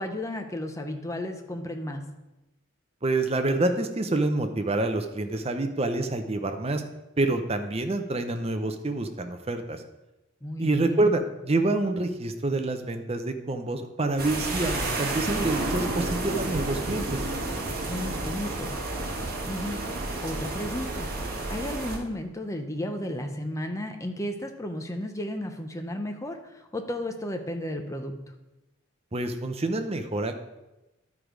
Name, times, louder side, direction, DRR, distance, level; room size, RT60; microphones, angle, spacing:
voice 1, 0.0-2.0 10.4-11.2 17.9-18.7 19.5-19.8 20.2-21.1 21.5-28.1, left 1 dB, 15° left, 5 dB, 0.7 m, -33 dB
voice 2, 3.0-6.8 7.2-9.8 10.6-17.3 29.1-30.3, right 2 dB, 30° right, 7 dB, 0.6 m, -27 dB
sound 1, 14.2-22.0, right 2 dB, 45° right, 1.3 m, -31 dB
11.0 x 4.8 x 5.0 m, 1.0 s
head